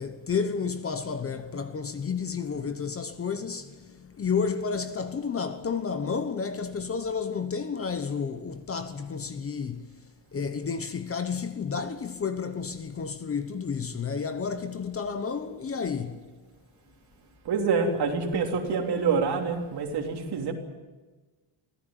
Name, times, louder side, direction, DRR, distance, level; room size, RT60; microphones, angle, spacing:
voice 1, 0.0-9.9 10.3-16.3, left 6 dB, 30° left, 1.1 m, -31 dB
voice 2, 17.4-20.5, right 5 dB, 55° right, 3.3 m, -26 dB
25.0 x 17.0 x 9.0 m
cardioid pair, 175°, 47 cm